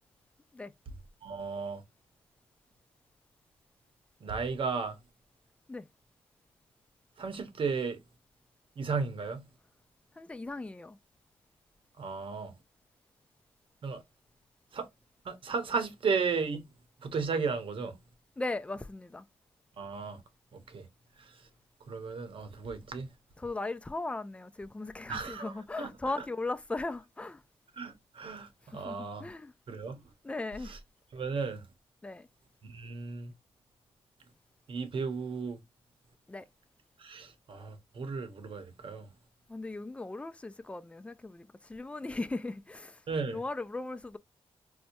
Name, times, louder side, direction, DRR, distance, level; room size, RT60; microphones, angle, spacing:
voice 1, 1.2-1.8 4.2-5.0 7.2-8.0 8.8-9.4 12.0-12.5 13.8-14.0 14.7-14.9 15.2-16.7 17.0-18.0 19.8-20.2 20.7-20.9 21.2-21.3 21.9-23.1 25.1-25.5 25.8-25.9 27.8-29.3 29.7-30.0 30.6-30.8 31.1-31.6 32.6-33.3 34.7-35.6 37.0-39.1 43.1-43.4, right 5 dB, 55° right, 0.9 m, -34 dB
voice 2, 10.2-11.0 18.4-19.2 23.4-27.4 28.8-29.5 30.2-30.7 32.0-32.3 36.3-36.5 39.5-43.0 43.3-44.2, left 2 dB, 10° left, 0.3 m, -38 dB
4.4 x 2.1 x 2.6 m
cardioid pair, 105°, 11 cm